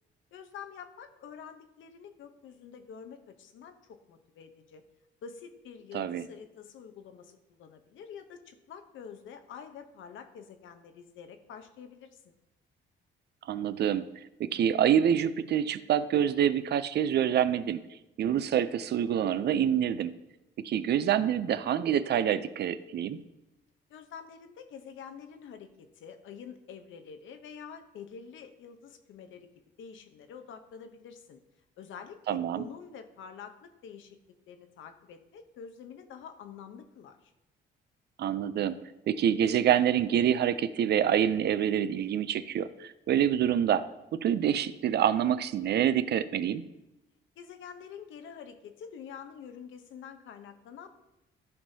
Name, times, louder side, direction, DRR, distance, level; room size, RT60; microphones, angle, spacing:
voice 1, 0.3-4.8 5.2-12.4 23.9-29.5 29.8-31.4 31.8-34.2 34.5-37.3 47.4-50.9, left 7 dB, 75° left, 8 dB, 0.9 m, -47 dB
voice 2, 5.9-6.3 13.5-14.0 14.4-17.8 18.2-20.1 20.6-23.2 32.3-32.6 38.2-38.8 39.1-43.8 44.1-46.6, right 9 dB, 60° right, 14 dB, 0.5 m, -26 dB
13.5 x 5.5 x 2.8 m, 0.95 s
cardioid pair, 90°, 20 cm